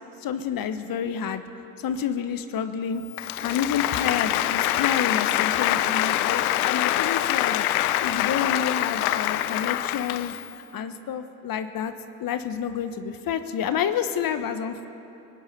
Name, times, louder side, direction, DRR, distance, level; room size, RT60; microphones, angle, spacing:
voice 1, 0.2-1.4 1.8-3.0 3.4-7.7 8.0-10.3 10.7-11.9 12.2-14.9, left 8 dB, 55° left, 9 dB, 1.1 m, -29 dB
Applause, 3.1-10.5, left 13 dB, 85° left, 0.5 m, -25 dB
23.0 x 10.5 x 5.8 m, 2.9 s
hypercardioid pair, 50°, 42 cm